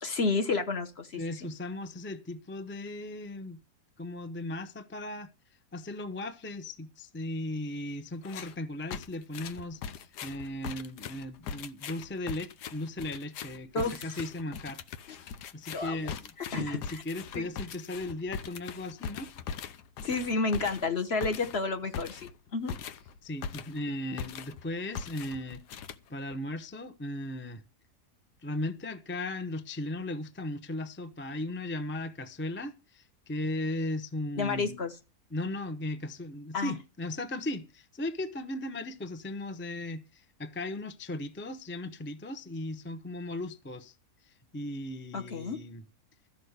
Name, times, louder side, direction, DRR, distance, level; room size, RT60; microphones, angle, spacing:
voice 1, 0.0-1.2 13.7-14.2 15.7-16.0 16.5-17.0 17.3-17.4 20.0-22.7 34.4-34.9 36.5-36.8 45.1-45.6, left 4 dB, 45° left, 1.3 m, -31 dB
voice 2, 1.2-3.6 4.0-5.3 5.7-14.8 15.2-19.3 23.2-25.6 26.1-27.6 28.4-34.8 35.3-43.9 44.2-45.8, left 1 dB, 15° left, 0.4 m, -37 dB
sound 1, 8.2-8.6 8.9-23.9 24.2-24.6 24.9-26.4, left 6 dB, 85° left, 1.4 m, -41 dB
13.5 x 5.5 x 8.0 m
omnidirectional pair, 1.7 m